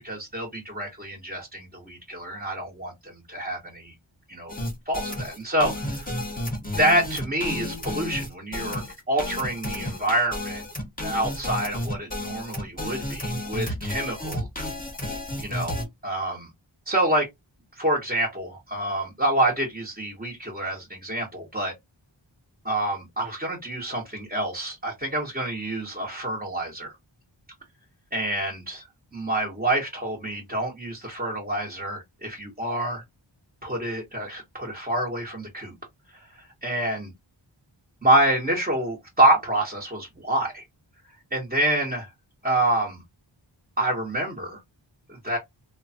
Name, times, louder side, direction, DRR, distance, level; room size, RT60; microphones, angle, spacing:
voice 1, 0.0-3.9 4.3-4.5 4.9-6.2 6.8-10.7 11.0-14.4 15.4-15.8 16.0-16.5 16.9-17.3 17.7-21.7 22.6-26.9 28.1-28.8 29.1-33.0 33.6-35.7 36.1-37.1 38.0-40.6 41.3-42.1 42.4-43.0 43.8-44.6 45.1-45.4, right 1 dB, 20° right, 0.9 m, -27 dB
sound 1, 4.5-15.8, left 1 dB, 20° left, 1.0 m, -32 dB
3.1 x 2.1 x 2.7 m
wide cardioid pair, 45°, 47 cm